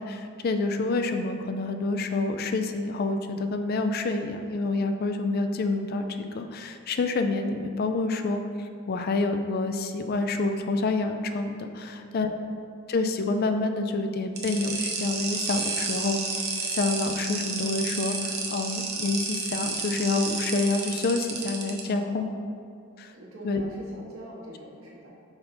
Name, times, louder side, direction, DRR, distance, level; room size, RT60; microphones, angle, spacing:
voice 1, 0.0-6.1 6.3-12.4 12.9-16.4 16.7-22.2 23.0-23.1 23.4-23.6, left 3 dB, 45° left, 7 dB, 0.4 m, -28 dB
voice 2, 11.8-12.2 21.8-22.4 23.1-25.1, equal, 85° right, -5 dB, 1.4 m, -44 dB
sound 1, 14.4-21.8, right 4 dB, 50° right, 0.8 m, -31 dB
5.5 x 4.0 x 4.3 m, 2.4 s
head